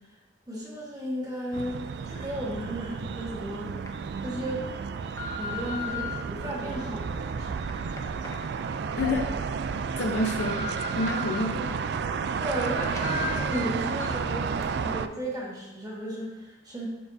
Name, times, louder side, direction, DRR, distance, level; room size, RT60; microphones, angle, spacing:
voice 1, 0.5-3.7 4.2-4.7 5.3-7.6 12.4-16.9, equal, 20° right, -4 dB, 1.3 m, -34 dB
sound 1, 1.5-15.1, right 5 dB, 65° right, 0.3 m, -32 dB
sound 2, 2.8-2.9 3.6-3.9 4.5-6.1 6.8-9.1 9.5-9.6 10.1-11.4 11.8-12.7 12.9-13.1 13.5-13.6 14.0-14.3 14.6-14.7, left 4 dB, 15° left, 0.6 m, -39 dB
voice 2, 9.0-9.3 10.0-11.8, left 2 dB, 80° left, 2 dB, 0.7 m, -29 dB
11.5 x 4.5 x 2.7 m, 1.1 s
head